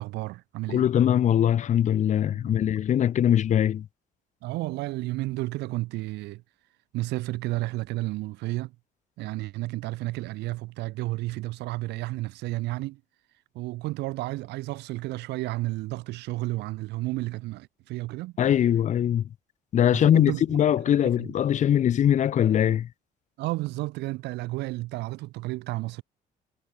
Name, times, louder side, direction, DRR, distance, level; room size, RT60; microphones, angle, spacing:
voice 1, 0.0-0.8 2.3-2.6 4.4-6.4 6.9-8.7 9.2-13.0 13.5-18.3 19.9-20.6 21.0-21.3 23.4-26.0, right 19 dB, 85° right, 2.7 m, -32 dB
voice 2, 0.7-3.9 18.4-19.2 19.7-22.9, left 10 dB, 45° left, 0.7 m, -22 dB
cardioid pair, 110°, 17 cm